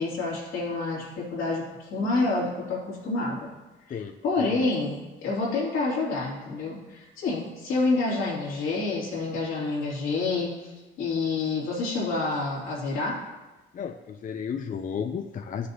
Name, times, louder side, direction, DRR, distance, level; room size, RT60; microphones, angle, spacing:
voice 1, 0.0-3.5 4.2-10.7 11.0-13.2, left 3 dB, 90° left, -5 dB, 2.8 m, -28 dB
voice 2, 3.9-4.6 13.7-15.7, left 7 dB, 40° left, 6 dB, 0.5 m, -33 dB
13.0 x 6.6 x 2.8 m, 1.1 s
cardioid pair, 90°, 20 cm